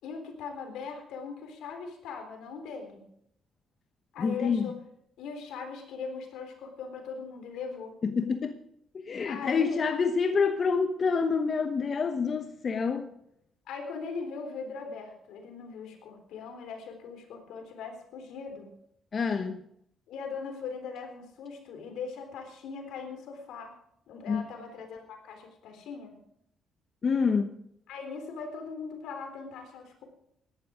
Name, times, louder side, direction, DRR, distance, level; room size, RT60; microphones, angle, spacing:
voice 1, 0.0-3.0 4.1-4.7 5.2-7.9 9.3-9.8 13.7-18.7 20.1-23.7 24.1-26.2 27.9-30.0, left 5 dB, 85° left, 3.7 m, -40 dB
voice 2, 4.2-4.7 8.0-8.6 8.9-13.1 19.1-19.6 24.3-24.5 27.0-27.6, left 5 dB, 45° left, 1.1 m, -27 dB
17.0 x 12.0 x 5.0 m
cardioid pair, 90°, 0 cm